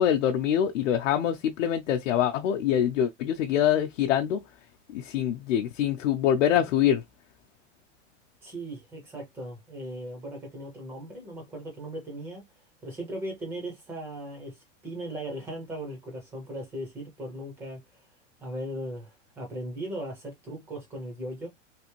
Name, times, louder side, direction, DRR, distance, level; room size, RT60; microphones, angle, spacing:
voice 1, 0.0-4.4 4.9-7.0, left 10 dB, 80° left, 0.6 m, -24 dB
voice 2, 8.4-12.4 12.8-18.0 18.4-21.5, right 1 dB, 5° right, 0.3 m, -38 dB
3.3 x 2.5 x 2.9 m
supercardioid pair, 165°, 37 cm